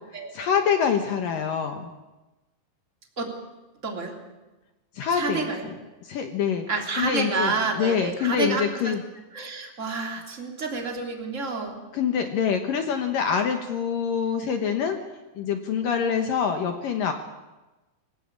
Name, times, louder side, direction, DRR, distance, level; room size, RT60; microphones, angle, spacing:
voice 1, 0.3-1.9 4.9-5.5 6.0-6.7 7.0-9.0 11.9-15.0 15.4-17.1, left 7 dB, 70° left, 6 dB, 2.2 m, -25 dB
voice 2, 3.8-4.1 5.2-5.7 6.7-8.9 9.3-11.8, right 3 dB, 20° right, 2 dB, 2.7 m, -29 dB
24.5 x 17.5 x 8.6 m, 1.1 s
omnidirectional pair, 5.6 m